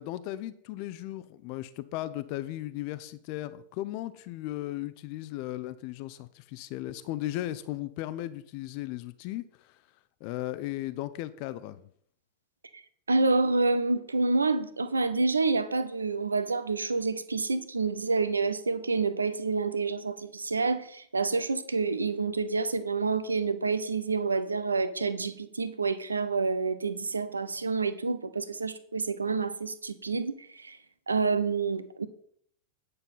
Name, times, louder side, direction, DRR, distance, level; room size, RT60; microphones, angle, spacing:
voice 1, 0.0-9.8 10.2-11.9, left 15 dB, 45° left, 0.5 m, -36 dB
voice 2, 13.1-30.8 31.1-32.1, right 4 dB, 75° right, 0.7 m, -28 dB
9.5 x 6.8 x 5.5 m
figure-of-eight pair, 90°, 0 cm